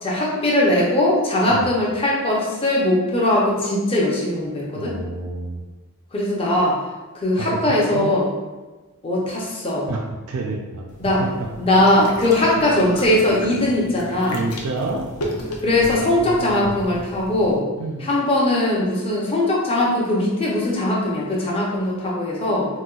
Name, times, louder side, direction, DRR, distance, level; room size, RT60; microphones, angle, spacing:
voice 1, 0.0-4.9 6.1-6.8 7.2-8.3 9.0-9.9 11.0-11.2 11.6-14.4 15.6-17.6 18.0-22.7, left 1 dB, 25° left, -4 dB, 0.6 m, -20 dB
voice 2, 4.8-5.6 7.4-8.1 9.9-10.0 10.3-10.8 11.2-11.3 12.0-12.3 14.3-15.1 15.8-15.9 16.3-16.8 17.8-18.1, right 3 dB, 75° right, 0 dB, 0.3 m, -29 dB
sound 1, 10.9-17.6, equal, 75° left, 0.6 m, -35 dB
4.0 x 2.2 x 2.3 m, 1.2 s
head